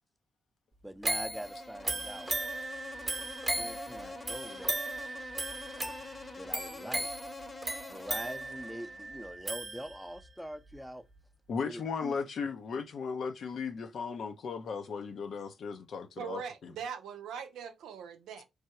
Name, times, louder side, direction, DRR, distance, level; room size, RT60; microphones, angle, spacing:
voice 1, 0.8-2.3 3.6-5.1 6.4-7.1 7.9-11.0 11.6-12.2, equal, ahead, 0.6 m, -44 dB
sound 1, 1.0-10.3 10.7-10.8, right 2 dB, 25° right, 0.9 m, -37 dB
Insect, 1.1-9.3, left 3 dB, 35° left, 0.8 m, -47 dB
voice 2, 11.5-16.7, left 5 dB, 65° left, 0.6 m, -36 dB
voice 3, 16.2-18.4, right 7 dB, 80° right, 0.5 m, -41 dB
3.3 x 2.3 x 2.8 m
hypercardioid pair, 45°, 0 cm